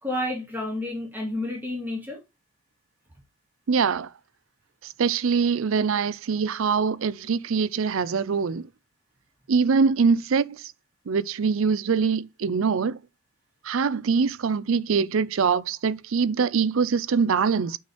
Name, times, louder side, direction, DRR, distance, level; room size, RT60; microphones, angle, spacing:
voice 1, 0.0-2.2, left 1 dB, 10° right, 2.6 m, -30 dB
voice 2, 3.7-4.1 5.0-8.6 9.5-10.6 11.1-13.0 13.7-17.8, right 5 dB, 70° right, 0.5 m, -23 dB
6.2 x 5.5 x 3.1 m
head